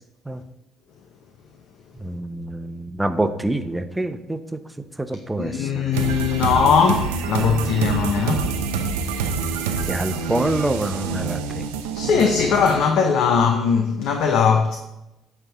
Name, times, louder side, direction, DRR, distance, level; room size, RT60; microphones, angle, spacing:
voice 1, 2.0-4.6 5.0-5.8 9.7-11.7 12.2-12.3, right 1 dB, 10° right, 0.9 m, -26 dB
voice 2, 5.4-8.5 11.9-14.8, left 6 dB, 65° left, 0.7 m, -19 dB
sound 1, 5.9-12.8, right 5 dB, 80° right, 0.6 m, -26 dB
8.9 x 3.6 x 7.0 m
hypercardioid pair, 50°, 0 cm